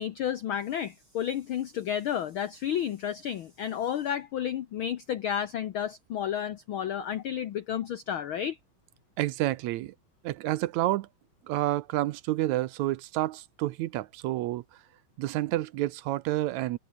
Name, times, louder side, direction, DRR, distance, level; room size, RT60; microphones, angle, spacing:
voice 1, 0.0-8.6, left 9 dB, 75° left, 1.1 m, -31 dB
voice 2, 9.2-9.9 10.2-11.1 11.5-14.6 15.2-16.8, right 16 dB, 75° right, 2.0 m, -29 dB
omnidirectional pair, 3.4 m